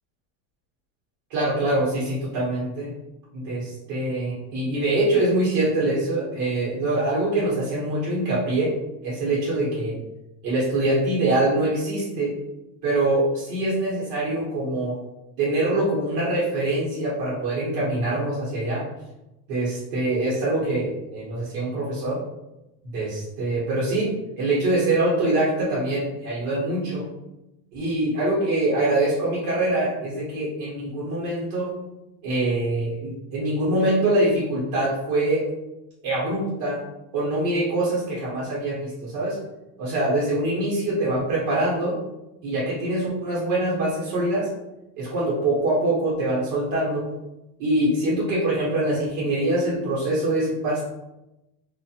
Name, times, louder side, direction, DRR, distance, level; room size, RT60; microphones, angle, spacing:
voice 1, 1.3-2.9 3.3-8.7 9.0-10.0 10.4-12.3 12.8-14.9 15.4-18.9 19.5-22.2 22.8-27.0 27.7-31.7 32.2-35.4 36.0-36.8 37.1-39.4 39.8-41.9 42.4-44.5 45.0-47.1 47.6-50.9, right 2 dB, 90° right, -7 dB, 1.1 m, -24 dB
2.5 x 2.4 x 2.8 m, 0.95 s
cardioid pair, 160°, 38 cm